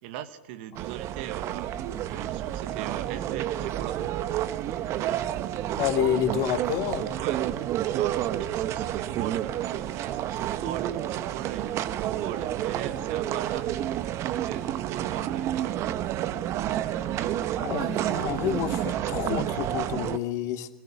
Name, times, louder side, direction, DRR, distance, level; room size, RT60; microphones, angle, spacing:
voice 1, 0.0-4.0 7.1-7.5 7.8-14.0 14.3-16.0 17.1-17.5, right 12 dB, 55° right, 1.7 m, -40 dB
sound 1, 0.8-20.2, right 12 dB, 40° right, 1.2 m, -30 dB
voice 2, 5.8-7.1 17.6-20.7, left 10 dB, 45° left, 2.5 m, -29 dB
28.0 x 20.5 x 7.2 m
hypercardioid pair, 100°, 8 cm